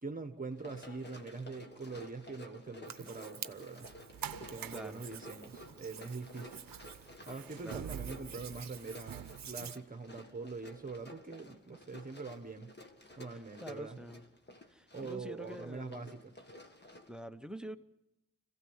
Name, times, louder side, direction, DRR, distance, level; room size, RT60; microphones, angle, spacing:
voice 1, 0.0-3.9 4.4-6.6 7.3-12.7 13.2-14.0 14.9-16.3, right 4 dB, 25° right, 1.4 m, -44 dB
Run, 0.5-17.2, left 1 dB, 30° left, 1.7 m, -53 dB
Hands, 2.8-9.8, right 8 dB, 55° right, 0.9 m, -50 dB
sound 1, 3.8-9.7, right 10 dB, 85° right, 0.7 m, -47 dB
voice 2, 4.7-5.4 7.3-8.1 13.3-14.2 14.7-16.1 17.1-17.8, equal, ahead, 0.8 m, -47 dB
26.0 x 16.0 x 7.3 m
wide cardioid pair, 105°, 33 cm